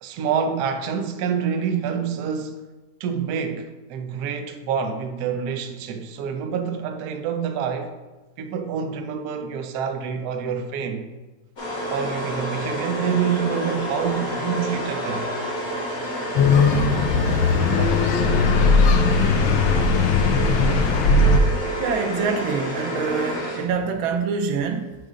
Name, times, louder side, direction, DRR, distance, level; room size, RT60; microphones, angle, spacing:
voice 1, 0.0-2.6 3.0-7.9 8.4-11.1 11.9-15.3 17.7-18.0, right 7 dB, 70° right, 1.0 m, -27 dB
sound 1, 11.6-23.9, equal, 45° left, 2.1 m, -29 dB
sound 2, 16.4-21.4, left 4 dB, 90° left, 1.4 m, -18 dB
voice 2, 21.8-25.0, right 5 dB, 90° right, 1.5 m, -25 dB
6.3 x 3.9 x 5.0 m
omnidirectional pair, 2.1 m